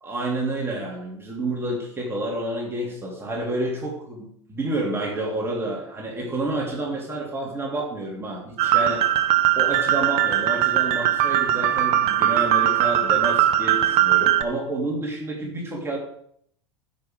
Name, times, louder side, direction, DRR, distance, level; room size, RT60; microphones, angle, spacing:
voice 1, 0.0-9.0 9.5-16.0, right 2 dB, 15° right, -1 dB, 3.0 m, -29 dB
sound 1, 8.6-14.4, right 12 dB, 40° right, 0.9 m, -20 dB
14.5 x 6.3 x 5.1 m, 0.69 s
figure-of-eight pair, 80°, 15 cm